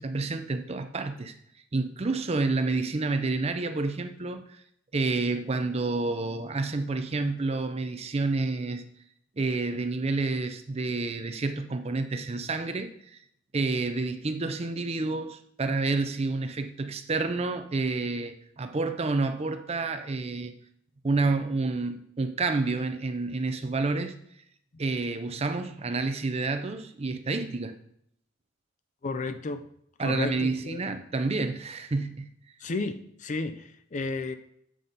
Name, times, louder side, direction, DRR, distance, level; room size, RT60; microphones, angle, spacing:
voice 1, 0.0-1.3 1.7-4.6 4.9-8.8 9.4-13.2 13.5-20.5 21.0-24.1 24.8-27.7 30.0-32.3, right 3 dB, 30° right, 0.5 m, -29 dB
voice 2, 29.0-29.6 30.0-31.0 32.6-34.3, left 3 dB, 35° left, 0.4 m, -33 dB
7.6 x 4.1 x 5.2 m
head